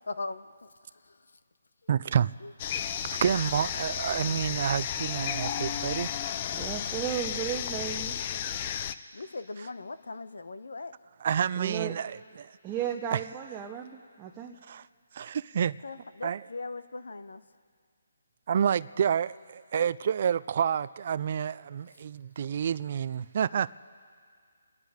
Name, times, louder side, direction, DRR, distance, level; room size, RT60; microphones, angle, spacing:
voice 1, 0.1-1.4 2.2-2.5 9.1-10.9 15.8-17.4, left 3 dB, 80° left, 12 dB, 0.9 m, -40 dB
voice 2, 1.9-2.3 3.1-6.1 11.2-12.5 13.1-13.2 14.7-14.9 15.1-15.8 16.2-16.4 18.5-23.7, right 8 dB, 45° right, 17 dB, 0.4 m, -29 dB
sound 1, 2.6-8.9, left 9 dB, 30° left, 0.5 m, -33 dB
voice 3, 6.5-8.2 11.6-11.9 12.6-14.6, right 9 dB, 15° right, 1 dB, 0.7 m, -34 dB
27.5 x 10.0 x 5.0 m, 2.1 s
hypercardioid pair, 160°, 0 cm